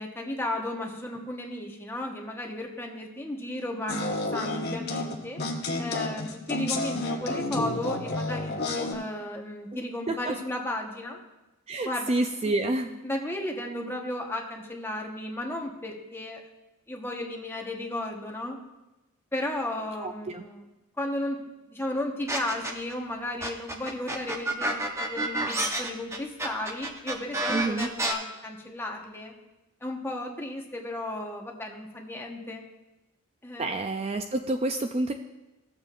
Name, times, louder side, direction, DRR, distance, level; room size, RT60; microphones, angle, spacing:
voice 1, 0.0-5.4 5.8-11.2 11.8-12.1 12.4-12.5 13.0-16.4 16.9-18.6 19.3-20.6 21.0-29.3 29.8-32.6 33.4-33.9, left 1 dB, 10° left, 0 dB, 1.1 m, -34 dB
sound 1, 3.9-8.9, left 2 dB, 50° left, 1.2 m, -30 dB
voice 2, 11.7-13.0 20.0-20.4 27.5-27.9 33.6-35.1, right 2 dB, 30° right, 6 dB, 0.4 m, -28 dB
sound 2, 22.3-22.9 23.4-28.1, right 1 dB, 15° right, 0.8 m, -29 dB
16.0 x 7.3 x 2.5 m, 1.0 s
head